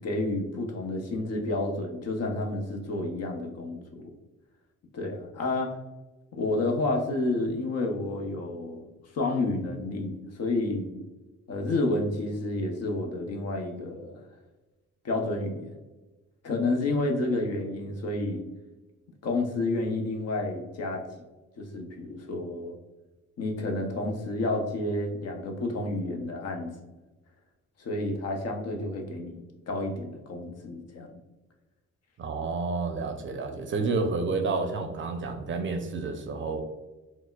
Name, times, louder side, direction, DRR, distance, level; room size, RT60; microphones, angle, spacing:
voice 1, 0.0-4.1 4.9-5.7 6.3-8.8 9.1-10.9 11.5-14.2 15.0-15.7 16.4-18.4 19.2-21.0 21.6-22.7 23.4-26.7 27.8-31.1, left 2 dB, 55° left, 3 dB, 0.7 m, -30 dB
voice 2, 32.2-36.6, right 3 dB, 40° right, 5 dB, 0.5 m, -30 dB
4.2 x 2.1 x 2.2 m, 1.1 s
cardioid pair, 90°, 30 cm